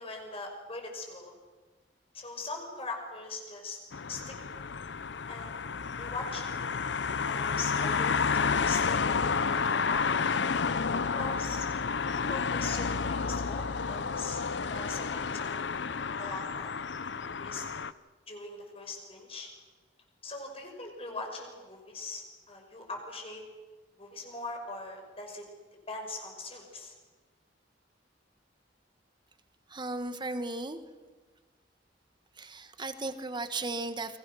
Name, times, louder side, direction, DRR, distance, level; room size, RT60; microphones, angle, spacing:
voice 1, 0.0-1.4 2.1-3.8 4.1-4.6 5.3-5.6 6.0-6.7 7.2-10.2 11.1-11.7 12.0-14.4 14.7-15.7 16.2-16.7 17.0-17.6 18.3-19.5 20.2-23.4 24.0-25.4 25.9-26.9, left 3 dB, 35° left, 3 dB, 5.8 m, -41 dB
sound 1, 3.9-17.9, left 5 dB, 70° left, 0.7 m, -31 dB
voice 2, 29.7-30.8 32.4-34.2, right 2 dB, 25° right, 10 dB, 1.5 m, -35 dB
29.5 x 23.5 x 6.4 m, 1.3 s
head